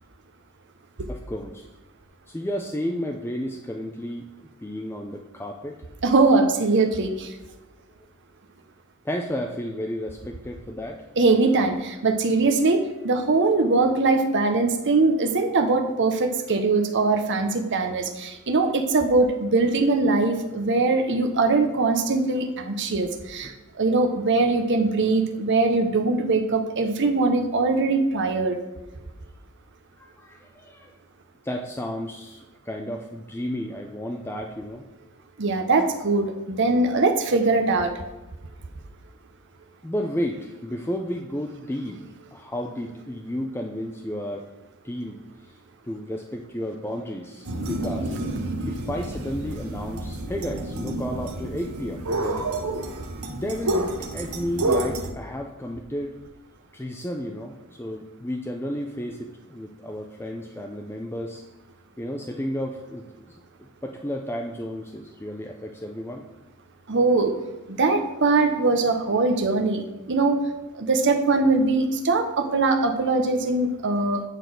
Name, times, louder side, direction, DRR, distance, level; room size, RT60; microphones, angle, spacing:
voice 1, 1.1-1.7 2.3-5.8 9.0-11.0 23.4-23.5 30.0-31.0 31.4-34.8 39.8-42.0 42.3-44.5 44.8-45.2 45.4-45.6 45.8-48.2 48.7-52.5 53.3-56.2 56.7-61.4 62.0-66.2, equal, 10° left, 2 dB, 0.5 m, -32 dB
voice 2, 6.0-7.4 11.2-28.6 35.4-37.9 66.9-67.3 67.7-70.4 70.7-74.2, right 3 dB, 55° right, 6 dB, 0.8 m, -22 dB
sound 1, 47.4-55.1, right 1 dB, 80° right, 1.0 m, -29 dB
9.1 x 4.0 x 6.3 m, 1.1 s
head